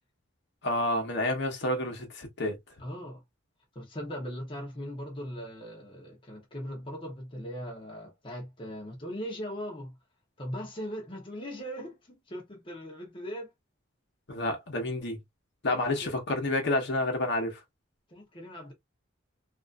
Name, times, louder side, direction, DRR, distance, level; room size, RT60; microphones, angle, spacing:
voice 1, 0.6-2.6 14.3-15.2 15.6-17.6, left 2 dB, 60° left, 1.0 m, -29 dB
voice 2, 2.8-3.2 3.7-9.9 10.4-13.5 15.7-16.2 18.1-18.7, equal, 25° left, 0.8 m, -39 dB
3.0 x 2.5 x 2.3 m
head